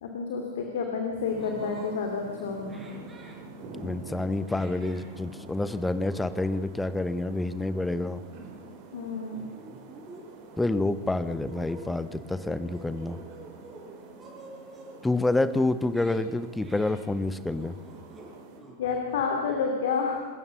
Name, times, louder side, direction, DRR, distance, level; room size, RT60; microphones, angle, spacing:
voice 1, 0.0-2.9 8.9-9.5 18.8-20.2, left 5 dB, 60° left, 2 dB, 2.6 m, -30 dB
sound 1, 1.2-18.6, right 3 dB, 45° right, 4.0 m, -47 dB
sound 2, 1.4-2.0 2.7-3.4 4.5-5.1 5.8-6.3 6.6-6.8 7.6-8.1 8.4-8.7 9.3-10.2 10.7-11.8 12.6-13.9 14.2-15.0 15.8-16.2 16.6-17.0 17.5-18.3 18.6-19.2, right 2 dB, 20° right, 5.5 m, -49 dB
voice 2, 3.8-8.2 10.6-13.2 15.0-17.8, left 2 dB, 5° left, 14 dB, 1.0 m, -28 dB
27.0 x 14.5 x 6.9 m, 1.4 s
figure-of-eight pair, 90°, 0 cm